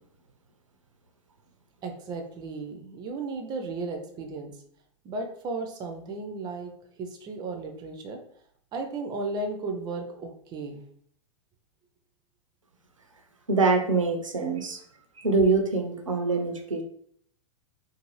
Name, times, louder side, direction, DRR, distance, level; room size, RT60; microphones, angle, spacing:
voice 1, 1.8-4.5 5.0-6.7 7.0-8.2 8.7-10.8, right 3 dB, 25° right, 5 dB, 0.5 m, -34 dB
voice 2, 13.5-14.8 15.2-16.8, right 3 dB, 80° right, 5 dB, 0.5 m, -24 dB
2.5 x 2.5 x 3.0 m, 0.64 s
figure-of-eight pair, 95°, 16 cm